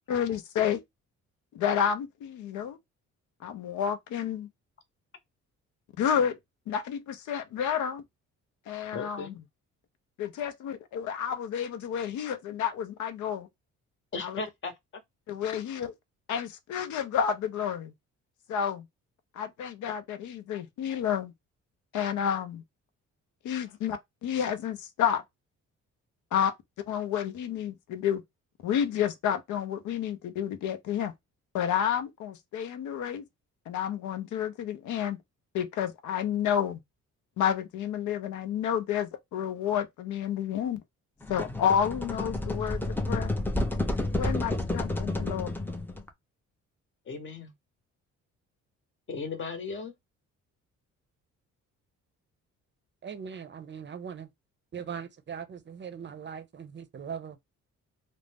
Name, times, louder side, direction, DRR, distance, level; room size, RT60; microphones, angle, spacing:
voice 1, 0.1-0.8 1.5-2.8 3.4-4.5 6.0-6.4 6.7-8.0 8.7-9.4 10.2-13.5 14.2-14.4 15.3-15.9 16.3-17.9 18.5-18.8 19.3-21.3 21.9-22.6 23.4-25.2 26.3-26.5 26.9-28.2 28.6-31.1 31.5-33.3 33.7-35.2 35.5-36.8 37.4-40.8 41.3-43.3 44.2-45.5, left 8 dB, 75° left, 0.6 m, -30 dB
voice 2, 8.9-9.4 14.1-14.7 47.1-47.5 49.1-49.9, left 4 dB, 40° left, 0.9 m, -36 dB
sound 1, 41.2-46.1, left 1 dB, 5° left, 0.5 m, -30 dB
voice 3, 53.0-54.3 54.7-57.4, right 7 dB, 40° right, 0.6 m, -40 dB
2.4 x 2.1 x 3.4 m
cardioid pair, 90°, 30 cm